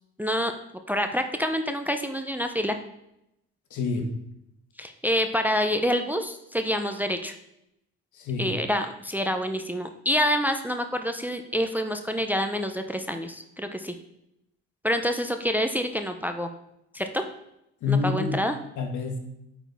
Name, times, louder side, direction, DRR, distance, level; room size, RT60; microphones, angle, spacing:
voice 1, 0.2-0.5 0.9-2.8 4.8-7.3 8.4-13.9 14.8-16.5 16.9-17.2 17.9-18.6, equal, 5° right, 6 dB, 0.5 m, -27 dB
voice 2, 3.7-4.1 8.1-8.6 17.8-18.4 18.8-19.2, left 4 dB, 75° left, 3 dB, 1.3 m, -27 dB
8.4 x 4.1 x 3.4 m, 0.83 s
cardioid pair, 90°, 30 cm